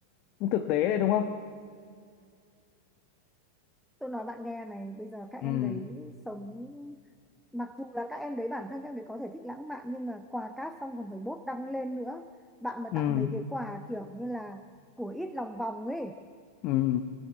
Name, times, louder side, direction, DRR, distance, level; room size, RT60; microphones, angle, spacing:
voice 1, 0.4-1.4 5.4-5.8 12.9-13.3 16.6-17.0, left 11 dB, 40° left, 7 dB, 1.1 m, -27 dB
voice 2, 4.0-7.0 7.5-12.3 12.6-14.6 15.0-16.2, equal, ahead, 6 dB, 1.0 m, -37 dB
25.0 x 19.0 x 8.6 m, 2.2 s
figure-of-eight pair, 90°, 0 cm